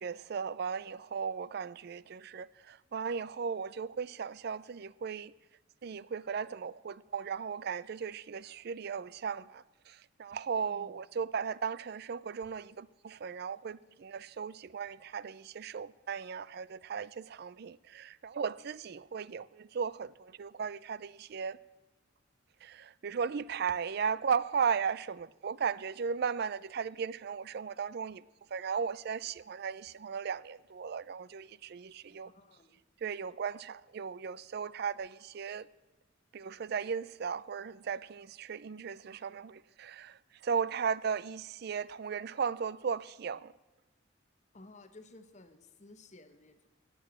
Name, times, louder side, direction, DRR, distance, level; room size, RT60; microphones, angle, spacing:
voice 1, 0.0-5.3 5.8-9.6 10.2-21.6 22.6-28.2 28.5-32.3 33.0-35.7 36.3-40.2 40.4-43.5, right 6 dB, 50° right, 0.4 m, -36 dB
voice 2, 10.7-11.0 32.1-32.8 44.5-46.7, left 2 dB, 35° left, 1.0 m, -55 dB
17.5 x 7.0 x 8.8 m
head